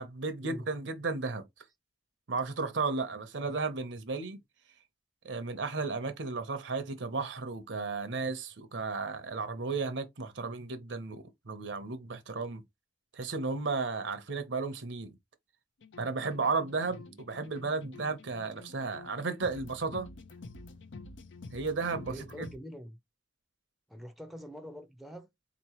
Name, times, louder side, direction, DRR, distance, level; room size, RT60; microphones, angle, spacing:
voice 1, 0.0-1.4 2.3-4.4 5.2-12.6 13.1-15.2 16.0-20.1 21.5-22.5, right 4 dB, 75° right, 0.8 m, -34 dB
sound 1, 15.8-22.6, left 3 dB, 90° left, 0.6 m, -49 dB
voice 2, 16.9-17.3 22.0-23.0 23.9-25.3, equal, ahead, 0.5 m, -45 dB
4.1 x 3.0 x 2.9 m
head